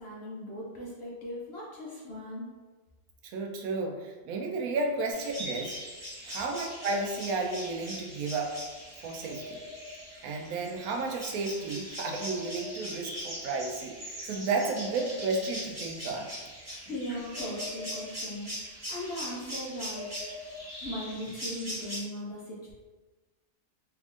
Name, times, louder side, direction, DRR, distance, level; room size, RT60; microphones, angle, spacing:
voice 1, 0.0-2.5 5.0-5.1 16.7-22.7, left 1 dB, 55° left, -4 dB, 0.8 m, -39 dB
voice 2, 3.2-5.8 6.2-8.6 9.0-9.6 10.2-16.3, right 3 dB, 85° right, 2 dB, 1.1 m, -32 dB
sound 1, 5.1-22.0, equal, 10° right, 1.0 m, -40 dB
3.4 x 3.4 x 2.5 m, 1.3 s
omnidirectional pair, 1.5 m